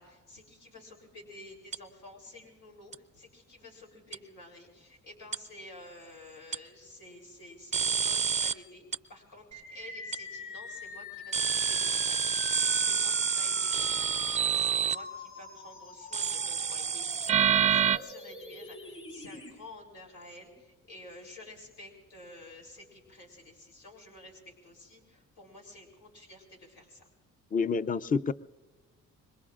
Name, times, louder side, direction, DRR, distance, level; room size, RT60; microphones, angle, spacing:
voice 1, 0.0-8.8 9.1-27.1, left 2 dB, 90° left, 0 dB, 3.6 m, -51 dB
sound 1, 1.7-1.8 2.9-3.0 4.1-4.2 5.3-5.4 6.5-6.6 7.7-8.5 8.9-9.0 10.1-10.2 11.3-14.9 16.1-18.0, right 7 dB, 25° right, 0.4 m, -27 dB
sound 2, 9.5-19.5, left 3 dB, 45° left, 7.4 m, -44 dB
voice 2, 27.5-28.3, left 5 dB, 30° left, 16 dB, 0.5 m, -28 dB
25.5 x 22.5 x 2.5 m, 1.2 s
cardioid pair, 90°, 30 cm